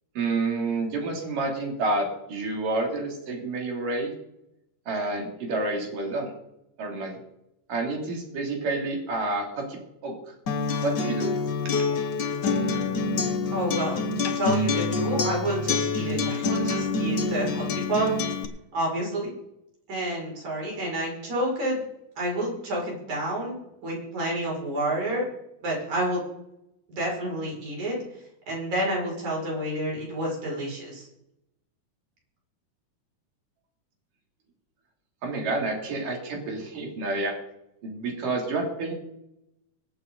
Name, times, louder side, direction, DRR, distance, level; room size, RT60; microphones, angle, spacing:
voice 1, 0.2-4.1 4.9-6.3 6.8-7.2 7.7-10.3 10.8-11.4 35.2-37.3 37.8-38.9, right 2 dB, 85° right, 0 dB, 4.6 m, -29 dB
Acoustic guitar, 10.5-18.4, left 3 dB, 80° left, 0.9 m, -26 dB
voice 2, 13.5-18.1 18.7-19.3 19.9-21.8 22.2-23.6 23.8-25.3 25.6-26.2 26.9-28.0 28.5-31.1, right 1 dB, 65° right, -3 dB, 7.2 m, -29 dB
24.5 x 8.6 x 3.9 m, 0.84 s
omnidirectional pair, 3.7 m